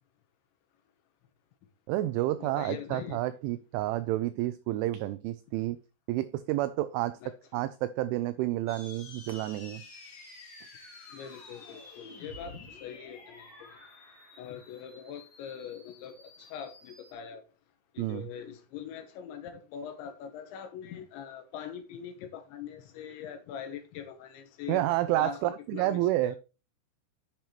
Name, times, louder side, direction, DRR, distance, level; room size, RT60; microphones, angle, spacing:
voice 1, 1.9-5.8 6.1-9.8 18.0-18.4 24.7-26.4, right 15 dB, 85° right, 2.8 m, -30 dB
voice 2, 2.4-3.2 7.2-7.3 11.1-13.5 14.4-17.4 17.9-24.8 25.2-25.4 25.7-26.4, left 8 dB, 75° left, 2.9 m, -42 dB
sound 1, 8.7-17.1, left 2 dB, 30° left, 2.4 m, -50 dB
10.5 x 7.5 x 3.0 m
omnidirectional pair, 5.8 m